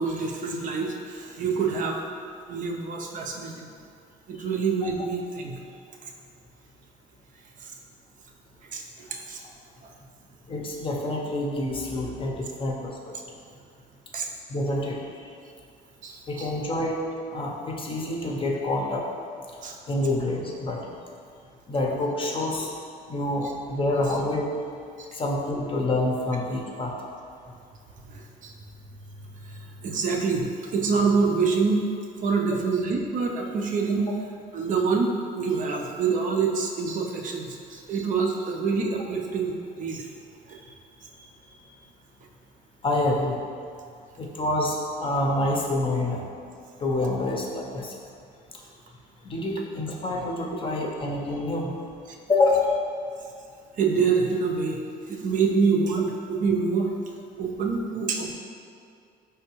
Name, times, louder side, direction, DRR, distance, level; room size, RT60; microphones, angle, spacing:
voice 1, 0.0-2.0 2.5-3.7 4.3-5.6 7.6-7.7 8.6-9.4 14.1-14.3 16.0-16.5 19.6-19.8 25.0-25.1 28.1-28.5 29.4-31.8 32.2-34.1 34.5-40.1 40.5-40.6 53.8-54.8 55.1-56.9 57.4-58.4, right 5 dB, 50° right, 1 dB, 0.5 m, -26 dB
voice 2, 10.5-13.1 14.5-15.3 16.3-17.0 17.3-19.1 19.9-20.8 21.7-22.7 23.1-24.5 25.1-26.9 40.7-40.8 42.8-43.5 44.2-46.3 46.8-47.9 48.5-48.6 49.2-51.7 52.3-52.8, left 2 dB, 30° left, -1 dB, 0.6 m, -27 dB
4.5 x 3.3 x 3.0 m, 2.3 s
cardioid pair, 110°, 17 cm